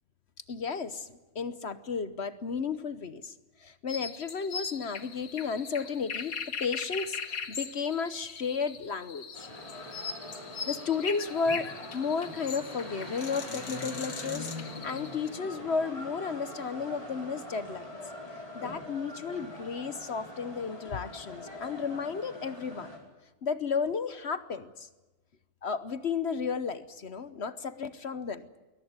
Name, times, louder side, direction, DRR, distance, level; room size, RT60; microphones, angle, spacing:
voice 1, 0.5-3.3 3.6-6.3 6.6-9.5 10.7-18.0 18.5-22.9 23.4-24.9 25.6-28.5, left 5 dB, 50° left, 13 dB, 1.1 m, -33 dB
sound 1, 3.9-15.3, left 6 dB, 75° left, 1.8 m, -40 dB
sound 2, 9.3-23.0, left 1 dB, 25° left, 5.3 m, -43 dB
22.0 x 19.0 x 9.6 m, 1.1 s
omnidirectional pair, 1.5 m